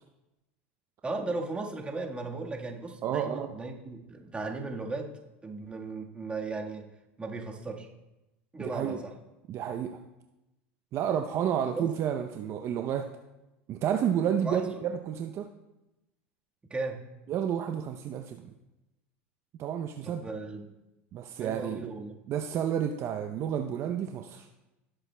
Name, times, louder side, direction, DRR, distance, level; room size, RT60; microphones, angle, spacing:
voice 1, 1.0-6.9 7.2-7.9 8.5-9.1 11.7-11.9 14.4-14.8 16.7-17.0 20.0-20.7 21.4-22.2, right 3 dB, 15° right, 0 dB, 1.5 m, -36 dB
voice 2, 3.0-3.5 8.6-9.0 9.5-10.0 10.9-13.1 13.7-15.5 17.3-18.5 19.6-20.2 21.1-21.9 22.3-24.5, right 9 dB, 45° right, 5 dB, 0.6 m, -30 dB
17.5 x 7.9 x 2.2 m, 0.99 s
hypercardioid pair, 95°, 7 cm